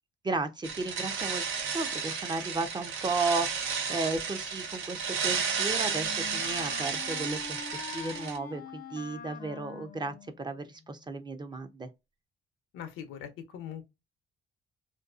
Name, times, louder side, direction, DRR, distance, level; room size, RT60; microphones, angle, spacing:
voice 1, 0.2-7.6 7.9-11.9, right 3 dB, 20° right, 0.5 m, -34 dB
sound 1, 0.6-8.4, right 6 dB, 85° right, 0.6 m, -33 dB
Wind instrument woodwind instrument, 5.0-10.8, left 6 dB, 50° left, 0.5 m, -44 dB
voice 2, 12.7-13.9, left 9 dB, 90° left, 0.6 m, -41 dB
2.5 x 2.3 x 2.4 m
cardioid pair, 90°, 20 cm